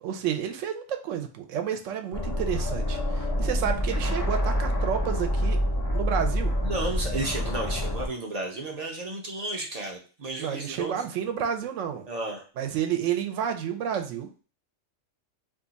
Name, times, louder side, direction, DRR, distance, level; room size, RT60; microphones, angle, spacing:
voice 1, 0.0-5.6 5.9-6.5 10.4-12.0 12.6-14.3, right 9 dB, 75° right, 6 dB, 0.9 m, -30 dB
sound 1, 2.1-8.1, equal, 30° left, 0.3 m, -27 dB
voice 2, 6.6-11.0 12.1-12.4, right 2 dB, 45° right, 1 dB, 0.5 m, -33 dB
2.7 x 2.4 x 3.9 m, 0.36 s
omnidirectional pair, 1.4 m